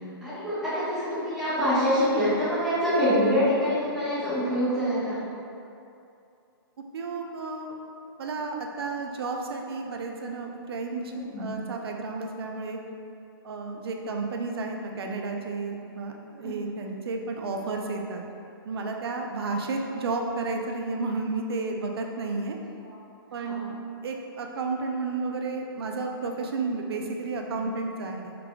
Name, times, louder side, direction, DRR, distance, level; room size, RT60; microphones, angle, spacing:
voice 1, 0.0-5.2 11.1-11.5 16.4-16.8 22.8-22.9 23.4-23.6 27.5-27.6, equal, ahead, -15 dB, 1.3 m, -26 dB
voice 2, 6.9-7.7 8.2-11.1 11.4-12.8 13.4-18.2 18.6-22.6 23.3-23.7 24.0-28.4, right 3 dB, 80° right, 2 dB, 0.6 m, -32 dB
4.8 x 3.6 x 2.3 m, 2.6 s
hypercardioid pair, 160°, 13 cm